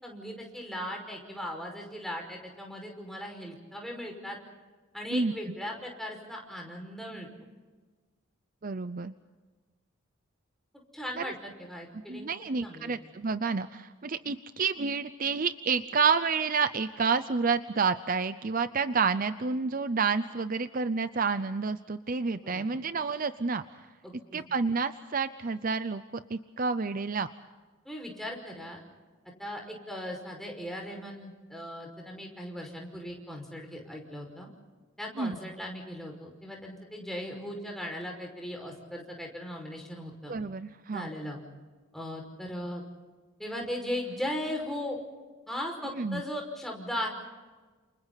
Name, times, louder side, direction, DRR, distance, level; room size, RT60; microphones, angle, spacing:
voice 1, 0.0-4.4 4.9-7.3 10.9-12.3 12.6-12.9 22.4-22.6 24.0-24.4 27.8-28.8 29.4-34.5 35.0-40.3 40.9-41.4 41.9-42.8 43.4-45.0 45.5-47.1, left 1 dB, ahead, 0 dB, 5.6 m, -38 dB
voice 2, 8.6-9.2 11.2-11.3 12.1-23.6 24.3-26.0 26.3-27.3 35.2-35.4 40.3-41.1 45.9-46.2, right 5 dB, 40° right, 12 dB, 0.6 m, -29 dB
30.0 x 28.5 x 4.1 m, 1.3 s
head